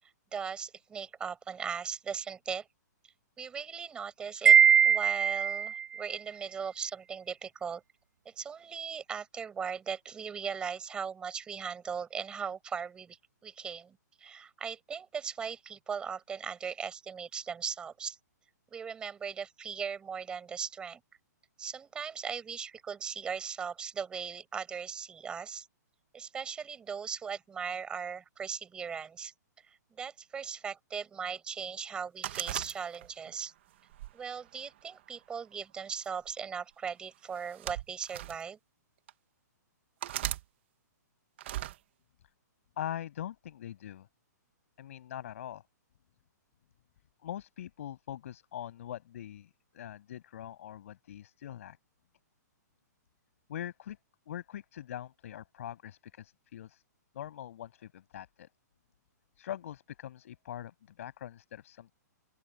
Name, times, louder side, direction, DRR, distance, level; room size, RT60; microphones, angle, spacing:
voice 1, 0.3-2.7 3.4-4.6 4.8-7.8 8.2-13.2 13.4-18.2 18.7-21.0 21.6-25.7 26.1-29.3 29.9-33.5 34.1-38.6, right 6 dB, 10° right, 6.5 m, -38 dB
Wind chime, 4.5-5.8, right 8 dB, 90° right, 0.5 m, -21 dB
sound 1, 32.2-33.3 33.9-35.1 36.0-36.3 37.3-38.4 39.1-39.2 40.0-40.4 41.4-41.8, right 14 dB, 40° right, 1.3 m, -38 dB
voice 2, 42.8-44.1 44.8-45.6 47.2-51.8 53.5-54.0 54.3-56.8 57.1-58.5 59.4-61.9, left 11 dB, 50° left, 7.0 m, -42 dB
open air
hypercardioid pair, 170°, 10 cm